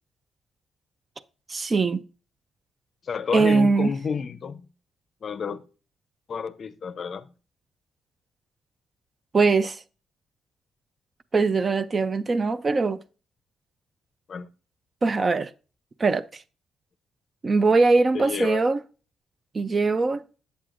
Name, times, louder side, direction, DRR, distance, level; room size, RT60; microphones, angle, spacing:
voice 1, 1.5-2.0 3.3-3.9 9.3-9.8 11.3-13.0 15.0-15.5 16.0-16.4 17.4-18.8 19.5-20.2, right 3 dB, 30° right, 0.4 m, -21 dB
voice 2, 3.0-4.6 5.2-5.6 6.3-7.3 14.3-14.5 18.1-18.6, left 6 dB, 45° left, 0.5 m, -30 dB
8.3 x 7.5 x 2.5 m
cardioid pair, 130°, 0 cm